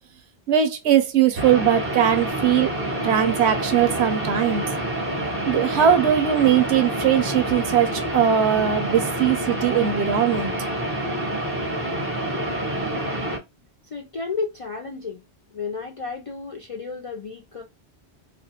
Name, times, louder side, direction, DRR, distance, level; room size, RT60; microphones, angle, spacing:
voice 1, 0.5-2.7 3.0-4.6 5.5-10.5, right 9 dB, 80° right, 0.9 m, -20 dB
sound 1, 1.4-13.4, right 1 dB, 15° right, 0.6 m, -27 dB
voice 2, 13.8-15.2 15.5-17.6, left 4 dB, 55° left, 0.3 m, -32 dB
2.4 x 2.2 x 2.7 m
omnidirectional pair, 1.1 m